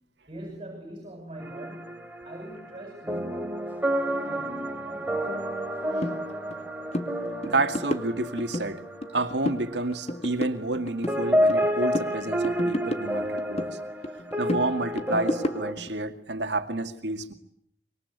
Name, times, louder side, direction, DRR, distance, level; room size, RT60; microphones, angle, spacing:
voice 1, 0.3-3.6 4.1-5.2, right 1 dB, 30° right, 2 dB, 7.9 m, -42 dB
sound 1, 1.4-10.8 11.1-15.7, equal, 10° right, 3.1 m, -30 dB
sound 2, 6.0-6.2 6.5-6.7 6.9-7.1 7.4-8.7 9.0-9.7 9.9-11.7 11.9-13.7 14.0-15.9, left 1 dB, 35° left, 2.1 m, -31 dB
voice 2, 7.4-8.8 9.1-13.7 14.4-17.3, right 2 dB, 75° right, 6 dB, 2.2 m, -29 dB
26.0 x 23.5 x 9.7 m, 0.72 s
head